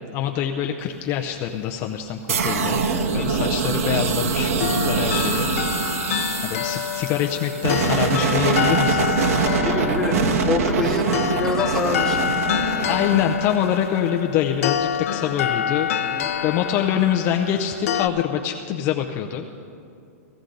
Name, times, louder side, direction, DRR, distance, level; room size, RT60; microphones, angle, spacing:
voice 1, 0.0-2.8 3.1-5.5 5.9-6.1 6.4-9.1 10.1-10.3 12.9-15.9 16.4-19.4, left 10 dB, 30° left, 3 dB, 0.6 m, -25 dB
sound 1, 2.3-14.1, right 5 dB, 70° right, 1.0 m, -24 dB
voice 2, 3.2-3.5 9.6-12.3 16.0-16.3, left 3 dB, 5° left, 0 dB, 0.9 m, -26 dB
sound 2, 4.6-18.1, left 10 dB, 65° left, 0.8 m, -27 dB
16.0 x 14.0 x 3.9 m, 2.4 s
hypercardioid pair, 145°, 8 cm